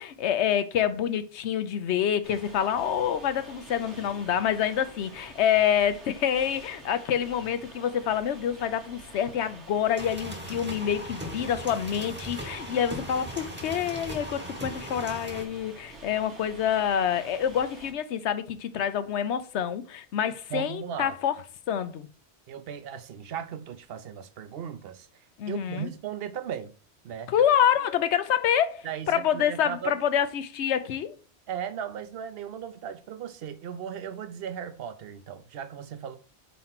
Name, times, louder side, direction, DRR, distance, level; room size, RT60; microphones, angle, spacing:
voice 1, 0.0-21.3 21.7-22.1 25.4-25.9 27.3-31.1, left 9 dB, 80° left, 0.9 m, -27 dB
sound 1, 2.2-17.9, right 2 dB, 85° right, 1.8 m, -48 dB
sound 2, 10.0-15.4, equal, 10° right, 0.9 m, -38 dB
voice 2, 20.5-21.1 22.5-26.7 27.0-27.4 28.8-30.0 31.5-36.2, right 8 dB, 65° right, 0.9 m, -37 dB
4.4 x 4.2 x 5.7 m
omnidirectional pair, 1.1 m